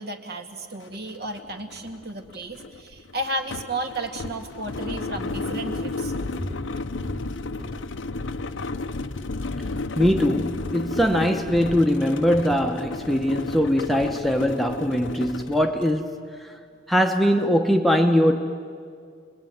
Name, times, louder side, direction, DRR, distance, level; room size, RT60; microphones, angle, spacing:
voice 1, 0.0-6.9 7.1-7.2, right 1 dB, 55° right, 2.3 m, -33 dB
sound 1, 0.8-0.9 1.2-16.0, left 3 dB, 85° left, 0.8 m, -33 dB
Walk footsteps, 4.3-8.6 8.9-9.3 9.6-11.9 12.2-12.3, equal, 35° right, 3.1 m, -42 dB
voice 2, 10.0-16.5 16.9-18.4, equal, ahead, 1.0 m, -21 dB
29.0 x 21.5 x 9.5 m
head